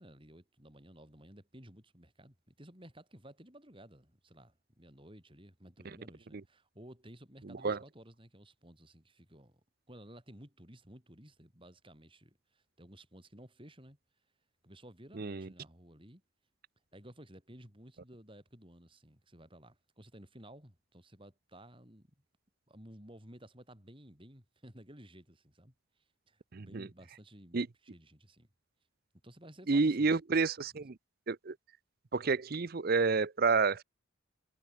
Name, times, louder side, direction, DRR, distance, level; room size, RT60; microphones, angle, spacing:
voice 1, 0.0-9.6 9.9-14.0 14.6-16.2 16.9-22.1 22.7-25.7 26.3-28.5 29.2-30.2 30.6-30.7, right 1 dB, 25° right, 7.4 m, -55 dB
voice 2, 7.4-7.8 15.1-15.5 26.5-26.9 27.5-27.7 29.7-31.0 31.3-31.5 32.1-33.8, right 4 dB, 45° right, 0.6 m, -29 dB
head